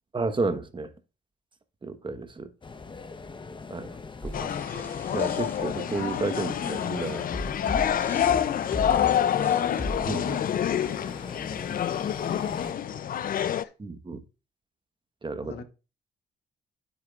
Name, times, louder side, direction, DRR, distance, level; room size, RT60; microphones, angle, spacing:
voice 1, 0.1-0.9 1.8-2.5 3.7-3.9 4.2-7.2 10.0-10.3 13.8-14.2 15.2-15.6, right 3 dB, 25° right, 1.1 m, -32 dB
sound 1, 2.6-12.7, left 4 dB, 25° left, 0.8 m, -42 dB
sound 2, 4.2-11.2, left 1 dB, 10° left, 1.2 m, -38 dB
sound 3, 4.3-13.6, left 10 dB, 55° left, 0.5 m, -27 dB
voice 2, 8.2-9.6 10.2-12.1 12.4-13.7 15.4-15.6, left 6 dB, 70° left, 1.1 m, -42 dB
9.5 x 8.0 x 2.4 m
cardioid pair, 80°, 18 cm